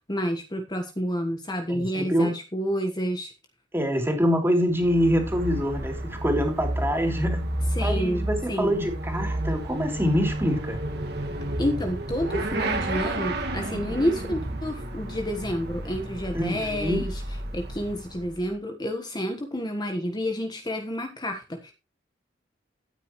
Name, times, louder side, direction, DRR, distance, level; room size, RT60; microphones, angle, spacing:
voice 1, 0.1-3.3 7.7-8.7 11.6-17.2 17.5-21.7, equal, 20° left, 1.4 m, -29 dB
voice 2, 1.7-2.3 3.7-7.5 7.8-10.8 16.3-17.1, equal, 10° right, 3.4 m, -25 dB
Motorcycle / Accelerating revving vroom, 4.7-18.5, right 1 dB, 60° right, 2.0 m, -31 dB
13.5 x 9.3 x 3.1 m
head